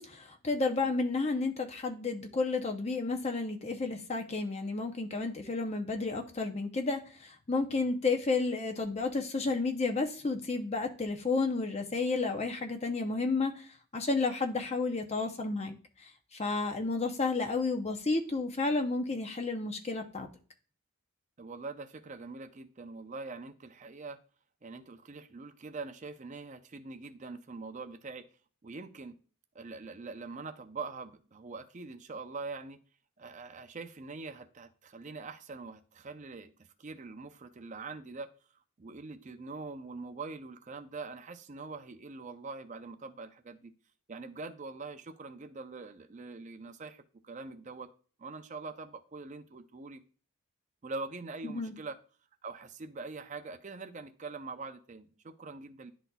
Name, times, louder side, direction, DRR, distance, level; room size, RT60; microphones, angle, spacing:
voice 1, 0.0-20.3 51.4-51.7, left 3 dB, 30° left, 0.6 m, -32 dB
voice 2, 21.4-24.2 24.6-28.3 28.6-29.2 29.5-32.8 33.2-38.3 38.8-43.7 44.1-47.9 48.2-50.0 50.8-52.0 52.4-55.9, right 3 dB, 35° right, 0.5 m, -43 dB
11.0 x 4.0 x 2.3 m
head